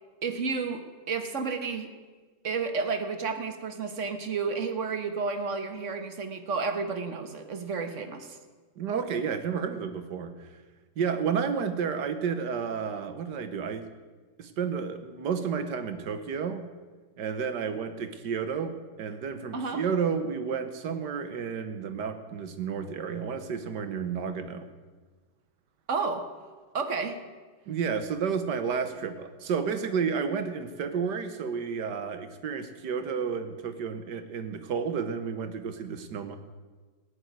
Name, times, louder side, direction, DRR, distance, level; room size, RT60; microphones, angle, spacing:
voice 1, 0.2-1.9 2.4-8.4 19.5-19.8 25.9-26.2 26.7-27.2, right 4 dB, 50° right, 7 dB, 1.5 m, -31 dB
voice 2, 8.8-10.5 11.0-13.9 14.4-16.7 17.2-24.7 27.7-36.4, right 6 dB, 85° right, 9 dB, 1.8 m, -31 dB
17.5 x 6.5 x 9.2 m, 1.4 s
omnidirectional pair, 1.8 m